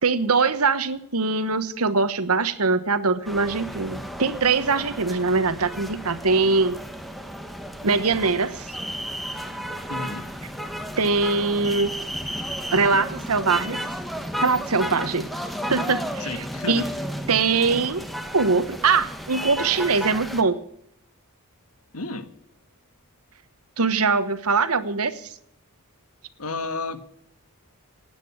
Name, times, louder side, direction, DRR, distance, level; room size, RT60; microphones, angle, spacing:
voice 1, 0.0-6.8 7.8-8.7 11.0-11.9 12.7-13.8 14.4-15.3 15.7-16.9 17.3-18.0 18.3-20.6 23.8-25.1, right 4 dB, 75° right, 12 dB, 1.2 m, -22 dB
sound 1, 3.2-20.4, equal, ahead, 1.4 m, -33 dB
voice 2, 9.9-10.2 16.2-16.9 21.9-22.3 26.4-27.0, left 3 dB, 80° left, 9 dB, 1.7 m, -31 dB
19.0 x 9.2 x 6.3 m, 0.73 s
head